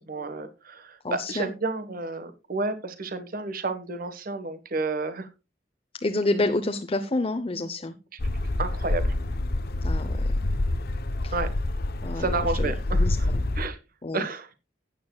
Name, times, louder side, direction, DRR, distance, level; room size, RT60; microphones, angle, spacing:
voice 1, 0.1-5.3 8.6-9.1 11.3-11.5 12.2-13.3 13.6-13.8 14.1-14.5, right 3 dB, 55° right, 10 dB, 1.4 m, -31 dB
voice 2, 1.0-1.5 6.0-7.9 9.8-10.5 11.2-11.3 12.0-13.5 14.0-14.2, left 2 dB, 30° left, 7 dB, 0.8 m, -29 dB
sound 1, 8.2-13.7, left 2 dB, 60° left, 0.8 m, -27 dB
15.0 x 9.3 x 2.3 m, 0.28 s
head